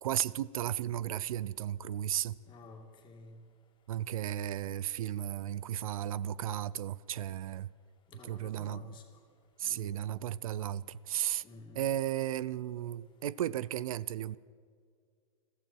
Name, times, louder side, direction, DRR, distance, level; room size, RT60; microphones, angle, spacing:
voice 1, 0.0-2.4 3.9-7.7 8.2-9.0 9.6-11.4 11.7-14.4, right 11 dB, 80° right, 0.5 m, -34 dB
voice 2, 2.5-3.4 8.1-9.0 9.6-9.9 11.4-12.0, left 3 dB, 25° left, 2.5 m, -52 dB
21.5 x 15.0 x 4.6 m
hypercardioid pair, 125°, 17 cm